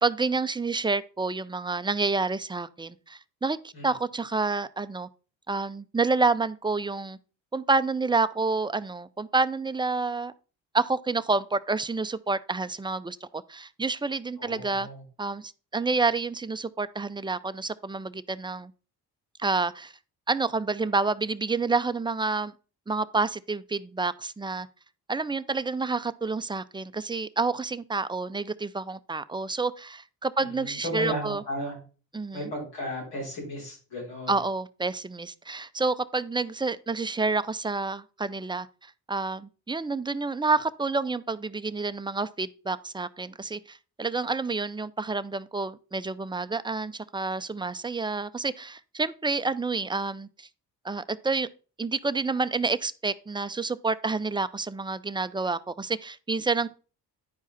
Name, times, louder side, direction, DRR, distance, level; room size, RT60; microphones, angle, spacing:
voice 1, 0.0-5.1 5.5-7.2 7.5-10.3 10.7-14.9 15.2-18.7 19.4-19.9 20.3-22.5 22.9-24.7 25.1-31.4 32.1-32.4 34.3-50.5 50.8-51.5 51.8-56.7, right 3 dB, 10° right, 0.5 m, -29 dB
voice 2, 14.4-15.0 30.4-31.8 32.3-34.4, equal, 85° left, 4.9 m, -35 dB
10.0 x 4.8 x 4.1 m
supercardioid pair, 50°, 42 cm